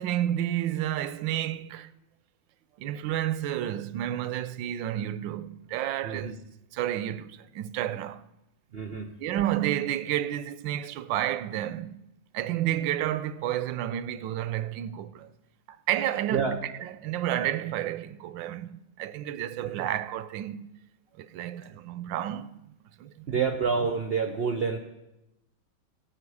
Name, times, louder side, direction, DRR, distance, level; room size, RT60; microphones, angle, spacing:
voice 1, 0.0-1.9 2.8-6.4 6.7-8.3 9.2-12.0 12.3-15.3 15.7-20.7 21.2-22.6 23.0-23.4, right 12 dB, 85° right, 1.3 m, -31 dB
voice 2, 6.0-6.4 8.7-9.1 16.3-16.6 19.6-19.9 23.3-24.8, right 5 dB, 70° right, 0.5 m, -28 dB
17.5 x 7.6 x 4.8 m
omnidirectional pair, 2.0 m